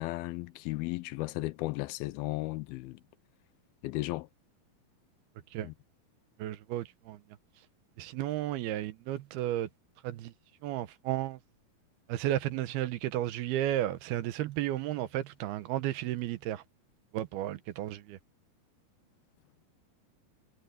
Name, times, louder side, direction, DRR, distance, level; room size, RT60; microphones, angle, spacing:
voice 1, 0.0-3.0 3.8-4.3 5.6-5.7, left 19 dB, 80° left, 2.4 m, -35 dB
voice 2, 6.4-7.2 8.0-9.7 10.0-10.3 10.6-11.4 12.1-16.6 17.1-18.2, right 13 dB, 80° right, 2.9 m, -33 dB
omnidirectional pair, 4.6 m